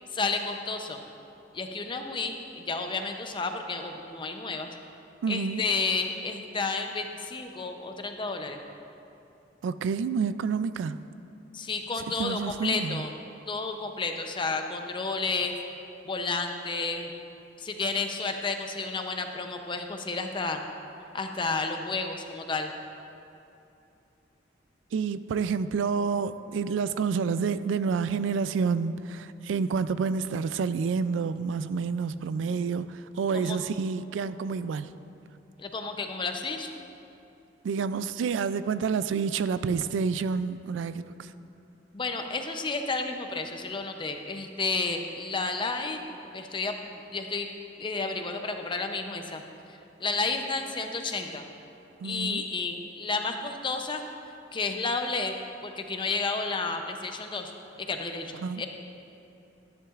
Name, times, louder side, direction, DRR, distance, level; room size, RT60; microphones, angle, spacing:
voice 1, 0.1-1.0 1.5-4.7 5.3-8.6 11.5-13.1 13.5-15.5 16.1-17.1 17.6-20.6 21.1-22.7 33.3-33.6 35.6-36.7 41.9-46.0 46.3-47.5 47.8-49.4 50.0-51.4 52.0-54.0 54.5-55.3 55.6-57.5 57.8-58.7, left 4 dB, 25° left, 5 dB, 0.6 m, -31 dB
voice 2, 5.2-5.6 9.6-11.1 12.2-13.1 24.9-34.9 37.6-41.3 52.0-52.4 58.4-58.6, right 5 dB, 85° right, 14 dB, 0.3 m, -29 dB
12.5 x 10.0 x 2.4 m, 2.8 s
head